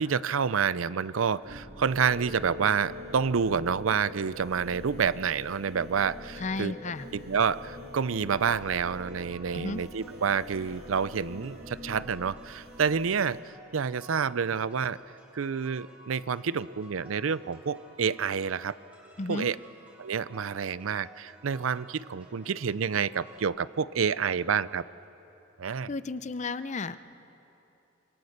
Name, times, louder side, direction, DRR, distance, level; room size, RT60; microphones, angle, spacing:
voice 1, 0.0-6.7 7.1-13.4 13.7-15.0 15.3-18.8 19.3-19.6 20.0-24.8 25.6-25.9, right 6 dB, 90° right, 17 dB, 0.5 m, -28 dB
sound 1, 1.4-13.4, left 1 dB, 55° right, 2.1 m, -44 dB
voice 2, 6.4-7.1 9.5-9.8 19.2-19.5 25.9-27.0, left 3 dB, 35° left, 13 dB, 0.6 m, -33 dB
sound 2, 8.4-23.4, right 1 dB, 10° right, 3.8 m, -55 dB
27.0 x 22.5 x 6.7 m, 2.9 s
head